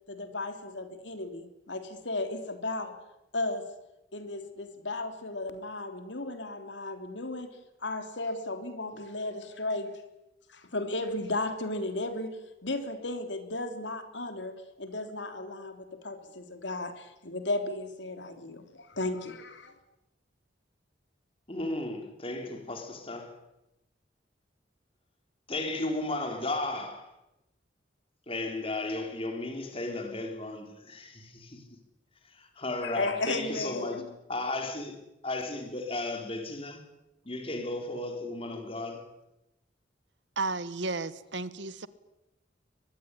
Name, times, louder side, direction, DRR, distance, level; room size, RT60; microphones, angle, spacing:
voice 1, 0.1-3.0 3.3-3.7 4.1-10.0 10.5-19.7 32.8-34.1, left 2 dB, 80° left, 3.3 m, -35 dB
voice 2, 21.5-23.4 25.5-27.1 28.3-31.6 32.2-34.0 34.3-35.0 35.2-36.8 37.2-39.1, left 2 dB, 30° left, 4.0 m, -34 dB
voice 3, 40.4-41.9, right 3 dB, 80° right, 1.5 m, -33 dB
23.5 x 21.0 x 9.9 m
head